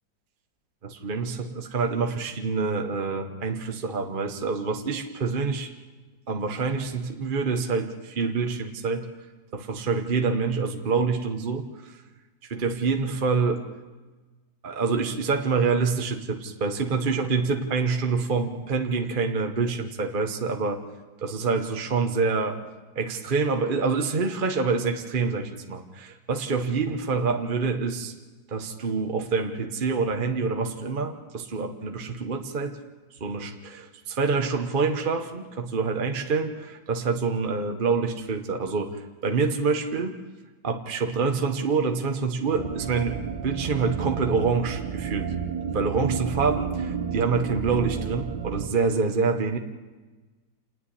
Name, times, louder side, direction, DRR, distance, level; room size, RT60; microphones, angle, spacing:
voice 1, 0.8-5.7 6.3-9.1 9.5-12.0 12.4-13.6 14.6-20.8 21.2-22.6 22.9-28.1 28.5-32.8 33.2-40.1 40.6-45.3 45.7-49.6, right 4 dB, 35° right, 4 dB, 0.9 m, -26 dB
sound 1, 42.5-48.7, right 7 dB, 70° right, 1.6 m, -31 dB
27.5 x 10.0 x 9.9 m, 1.3 s
omnidirectional pair, 2.0 m